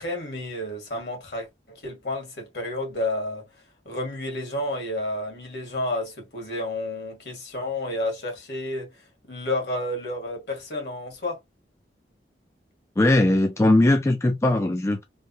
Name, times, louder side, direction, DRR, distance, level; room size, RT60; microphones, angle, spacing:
voice 1, 0.0-3.4 3.8-8.9 9.3-11.4, left 1 dB, 65° left, 1.6 m, -30 dB
voice 2, 13.0-15.0, left 1 dB, 15° left, 0.3 m, -19 dB
3.3 x 2.2 x 2.7 m
head